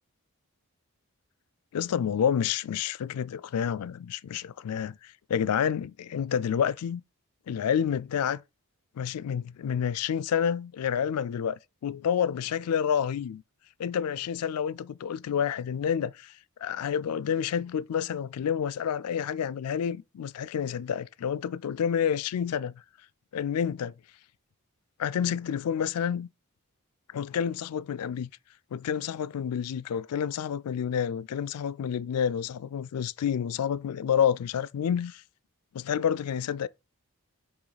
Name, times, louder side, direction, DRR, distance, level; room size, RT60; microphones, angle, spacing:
voice 1, 1.7-7.0 7.5-8.4 9.0-13.4 13.8-16.3 16.6-22.7 23.3-23.9 25.0-26.3 27.1-28.3 28.7-35.2 35.7-36.7, left 8 dB, 75° left, 0.3 m, -29 dB
6.3 x 3.0 x 4.9 m
head